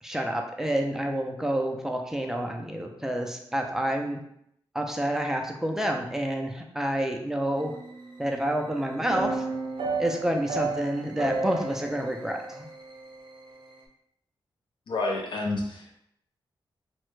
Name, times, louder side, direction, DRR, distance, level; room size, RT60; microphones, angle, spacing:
voice 1, 0.0-4.2 4.7-7.8 8.2-9.5 10.0-12.7, right 1 dB, 5° right, 2 dB, 0.3 m, -28 dB
sound 1, 7.6-8.7 9.1-13.7, right 3 dB, 65° right, 0.5 m, -33 dB
voice 2, 14.9-15.9, left 2 dB, 65° left, 1 dB, 0.4 m, -29 dB
3.2 x 2.0 x 3.1 m, 0.75 s
wide cardioid pair, 160°, 9 cm